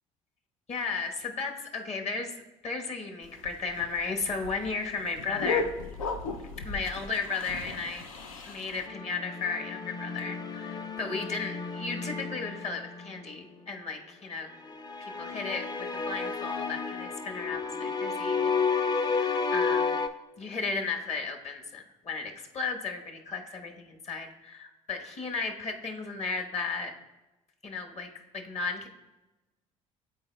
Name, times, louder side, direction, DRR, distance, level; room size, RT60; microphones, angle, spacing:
voice 1, 0.7-2.3 2.6-5.7 6.6-8.0 8.4-14.5 15.0-20.0 20.4-26.9 27.6-28.9, left 4 dB, 40° left, 4 dB, 1.2 m, -35 dB
sound 1, 3.2-8.9, left 4 dB, 85° left, 0.5 m, -36 dB
sound 2, 8.9-13.2 14.6-20.1, left 5 dB, 25° left, 0.5 m, -32 dB
12.5 x 4.3 x 2.3 m, 1.0 s
hypercardioid pair, 60°, 17 cm